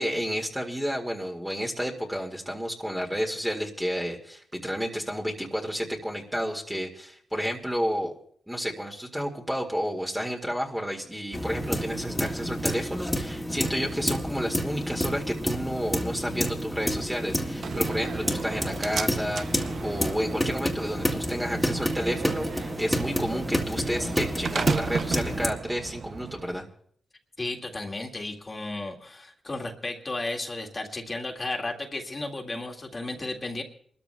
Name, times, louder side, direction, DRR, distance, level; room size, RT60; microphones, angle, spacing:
voice 1, 0.0-8.1 8.5-26.7, equal, 5° right, -1 dB, 2.0 m, -31 dB
sound 1, 11.3-25.5, equal, 10° left, 2.0 m, -30 dB
Slam, 17.6-26.6, right 6 dB, 70° right, 0.5 m, -35 dB
voice 2, 27.4-33.6, left 2 dB, 35° left, 1 dB, 2.0 m, -34 dB
28.5 x 13.0 x 2.2 m, 0.62 s
supercardioid pair, 45°, 0 cm